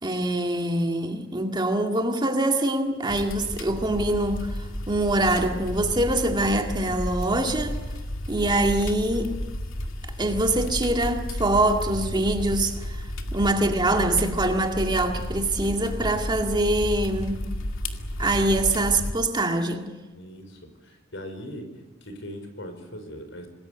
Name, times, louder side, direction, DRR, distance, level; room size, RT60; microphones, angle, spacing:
voice 1, 0.0-4.6 4.9-7.8 8.3-9.4 10.2-13.0 13.3-17.4 18.2-19.9, right 1 dB, 20° right, 2.1 m, -24 dB
sound 1, 3.1-19.1, left 1 dB, 85° left, 2.3 m, -32 dB
voice 2, 20.1-21.7 22.0-23.5, equal, 65° left, 5.0 m, -40 dB
27.5 x 20.5 x 8.3 m
head